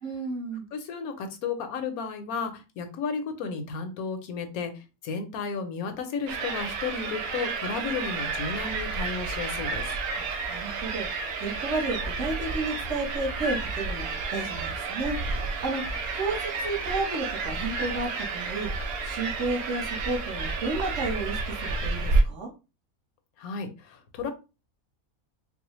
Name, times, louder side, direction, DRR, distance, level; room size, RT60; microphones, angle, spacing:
voice 1, 0.0-0.6 10.2-11.1 11.4-15.2 15.6-18.7 19.0-22.5, right 3 dB, 60° right, 0 dB, 1.2 m, -32 dB
voice 2, 0.7-9.9 23.4-24.3, left 5 dB, 80° left, 7 dB, 1.1 m, -33 dB
sound 1, 6.3-22.2, right 3 dB, 90° right, 1.1 m, -30 dB
3.9 x 2.0 x 3.0 m, 0.29 s
omnidirectional pair, 1.5 m